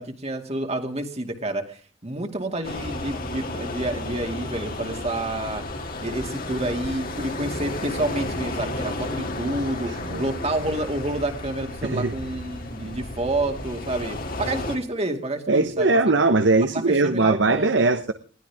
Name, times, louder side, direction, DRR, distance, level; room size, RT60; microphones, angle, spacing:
voice 1, 0.0-5.6 6.0-15.9 16.7-17.8, right 1 dB, 35° right, 2.4 m, -29 dB
sound 1, 2.6-14.8, left 2 dB, 50° left, 2.8 m, -32 dB
voice 2, 9.9-10.2 11.8-12.1 12.8-12.9 15.5-18.1, right 3 dB, 70° right, 1.1 m, -20 dB
21.0 x 16.0 x 3.6 m
head